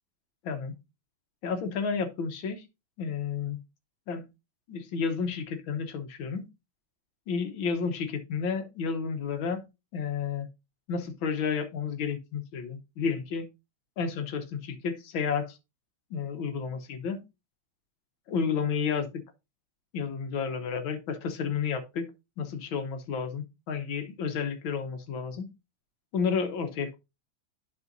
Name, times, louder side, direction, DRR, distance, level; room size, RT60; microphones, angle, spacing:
voice 1, 0.4-0.8 1.4-2.6 3.0-3.6 4.1-4.3 4.7-6.5 7.3-9.7 9.9-10.5 10.9-13.5 14.0-15.6 16.1-17.2 18.3-19.2 19.9-22.1 22.4-25.5 26.1-27.0, left 6 dB, 85° left, 1.8 m, -31 dB
11.0 x 6.1 x 2.6 m
omnidirectional pair, 2.1 m